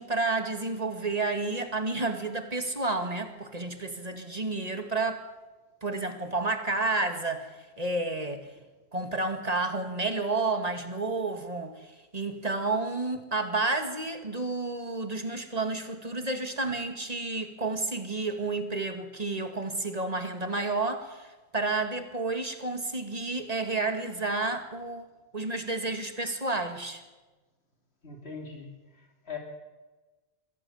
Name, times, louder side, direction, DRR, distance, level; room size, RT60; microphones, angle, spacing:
voice 1, 0.0-5.2 5.8-8.5 8.9-25.1 25.3-27.0, right 3 dB, 40° right, 7 dB, 2.2 m, -31 dB
voice 2, 28.0-29.4, left 5 dB, 85° left, 2 dB, 3.4 m, -41 dB
22.5 x 16.5 x 7.2 m, 1.2 s
omnidirectional pair, 1.1 m